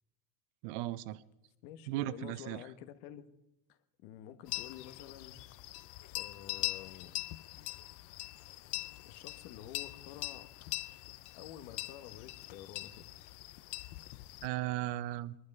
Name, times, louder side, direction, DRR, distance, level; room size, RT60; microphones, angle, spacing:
voice 1, 0.6-1.2 1.9-2.6 14.4-15.4, right 15 dB, 75° right, 17 dB, 0.8 m, -36 dB
voice 2, 1.6-3.2 3.7-5.4 6.1-7.1 9.0-10.5 11.3-13.1, left 11 dB, 80° left, 12 dB, 1.3 m, -49 dB
sound 1, 4.5-14.5, left 18 dB, 60° left, 0.7 m, -42 dB
22.0 x 11.5 x 5.4 m, 0.93 s
cardioid pair, 170°, 36 cm